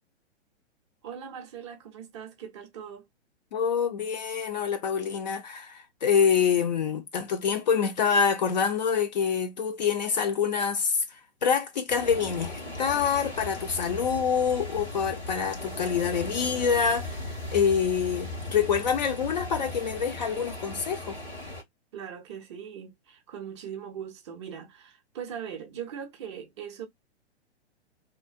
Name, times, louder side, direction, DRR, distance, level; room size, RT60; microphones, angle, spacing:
voice 1, 1.0-3.1 21.9-26.9, right 8 dB, 25° right, 0.5 m, -40 dB
voice 2, 3.5-11.0 11.4-17.2 17.5-21.2, left 6 dB, 40° left, 0.4 m, -26 dB
sound 1, 11.9-21.6, left 2 dB, 85° left, 1.4 m, -37 dB
2.7 x 2.0 x 2.4 m
figure-of-eight pair, 110°, 35 cm